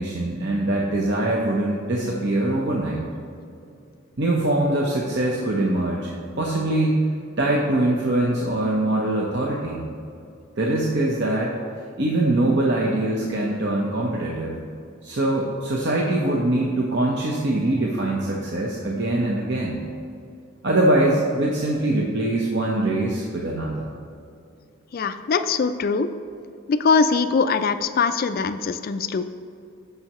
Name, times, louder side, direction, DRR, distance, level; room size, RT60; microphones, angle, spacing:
voice 1, 0.0-3.0 4.2-7.0 7.4-9.8 10.6-11.5 12.0-14.6 15.0-19.8 20.6-23.9, right 1 dB, 60° right, -2 dB, 0.9 m, -23 dB
voice 2, 24.9-26.1 26.7-29.2, left 5 dB, 45° left, 11 dB, 0.4 m, -22 dB
14.5 x 5.5 x 3.0 m, 2.5 s
head